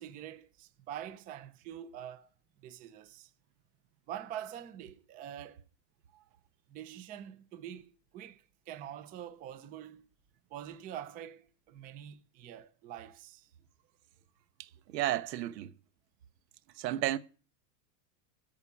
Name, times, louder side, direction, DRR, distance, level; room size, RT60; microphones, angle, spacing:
voice 1, 0.0-2.3 2.6-3.3 4.1-5.6 6.1-6.2 6.7-10.1 10.5-13.5, right 10 dB, 20° right, 0.5 m, -45 dB
voice 2, 14.9-15.7 16.8-17.2, right 14 dB, 85° right, 1.2 m, -32 dB
14.0 x 5.1 x 8.4 m
supercardioid pair, 155°, 49 cm